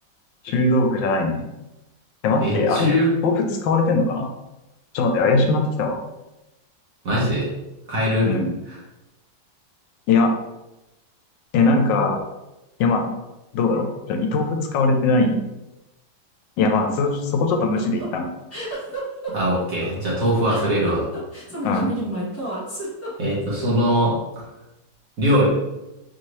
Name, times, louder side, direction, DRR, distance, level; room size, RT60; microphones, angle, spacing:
voice 1, 0.4-1.5 2.2-2.9 3.2-4.3 4.9-6.0 8.2-8.5 10.1-10.3 11.5-12.2 12.8-13.1 13.5-15.4 16.6-18.3 21.6-21.9, left 3 dB, 90° left, 3 dB, 1.3 m, -20 dB
voice 2, 2.4-3.1 7.0-7.5 7.9-8.3 8.7-8.8 19.3-21.0 23.2-24.2 25.2-25.5, equal, 50° right, -6 dB, 1.7 m, -21 dB
sound 1, 17.3-23.6, right 1 dB, 10° left, 0.9 m, -31 dB
4.9 x 2.8 x 3.1 m, 0.97 s
omnidirectional pair, 2.0 m